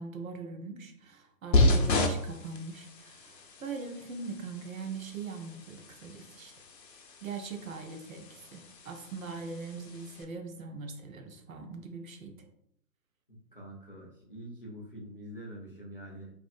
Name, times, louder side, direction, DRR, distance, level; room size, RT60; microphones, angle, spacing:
voice 1, 0.0-6.5 7.2-12.4, right 4 dB, 55° right, 4 dB, 0.6 m, -41 dB
sound 1, 1.5-10.2, left 2 dB, 85° left, 0.6 m, -32 dB
voice 2, 13.3-16.3, equal, 35° left, -3 dB, 0.4 m, -45 dB
2.5 x 2.4 x 2.5 m, 0.73 s
figure-of-eight pair, 140°, 49 cm